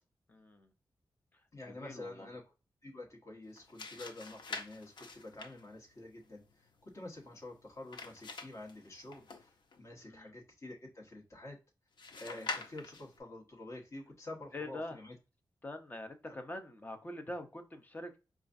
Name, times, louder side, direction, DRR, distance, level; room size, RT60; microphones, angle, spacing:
voice 1, 0.3-0.7 1.3-1.4 1.7-2.3 10.0-10.4 14.5-15.0 15.6-18.2, left 1 dB, 25° left, 5 dB, 0.6 m, -44 dB
voice 2, 1.5-2.4 2.8-11.6 12.2-15.1, left 2 dB, 40° left, -1 dB, 1.4 m, -48 dB
sound 1, 3.4-9.8 12.0-13.2, left 3 dB, 90° left, 0.7 m, -46 dB
4.9 x 2.4 x 2.5 m, 0.29 s
wide cardioid pair, 135°, 8 cm